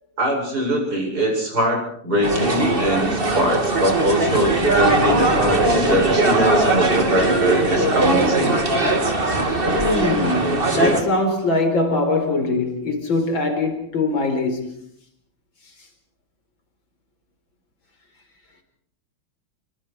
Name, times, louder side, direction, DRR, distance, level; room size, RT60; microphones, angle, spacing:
voice 1, 0.2-8.6, equal, 50° right, 8.1 m, -22 dB
sound 1, 2.2-11.0, right 2 dB, 25° right, 2.6 m, -20 dB
voice 2, 9.7-14.8, left 2 dB, 75° left, 5.3 m, -22 dB
28.0 x 24.0 x 4.8 m
omnidirectional pair, 2.2 m